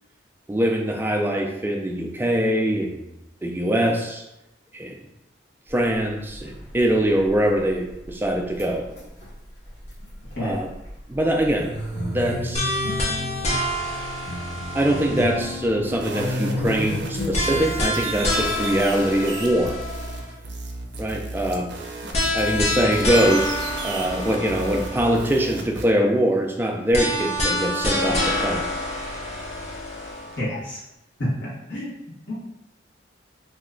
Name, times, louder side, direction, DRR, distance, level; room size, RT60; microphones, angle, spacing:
voice 1, 0.5-3.1 3.4-4.2 4.7-5.0 5.7-8.9 10.4-10.7 11.1-11.7 12.1-12.8 14.7-19.8 21.0-21.7 22.3-23.5 23.8-28.6, right 1 dB, 10° right, 1 dB, 0.3 m, -23 dB
sound 1, 6.3-6.8 7.2-7.6 8.6-8.7 8.9-9.2 9.7-10.9 11.2-17.6, left 1 dB, 60° left, 1.2 m, -31 dB
sound 2, 12.5-15.7 17.3-20.3 22.1-25.3 26.9-30.4, left 1 dB, 35° left, 0.6 m, -27 dB
sound 3, 15.9-25.8, right 3 dB, 70° right, 0.5 m, -35 dB
voice 2, 30.4-30.8 31.4-31.9 32.3-32.4, left 1 dB, 80° left, -10 dB, 1.3 m, -30 dB
3.0 x 2.2 x 3.7 m, 0.89 s
head